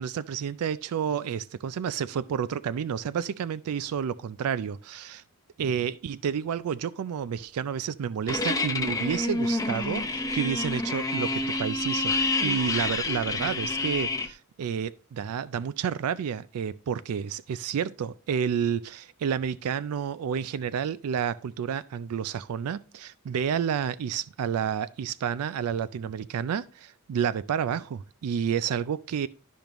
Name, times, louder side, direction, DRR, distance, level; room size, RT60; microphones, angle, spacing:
voice 1, 0.0-5.2 5.6-29.3, right 7 dB, 85° right, 0.3 m, -30 dB
sound 1, 8.3-14.3, left 2 dB, 15° left, 0.6 m, -28 dB
12.0 x 5.2 x 3.0 m
head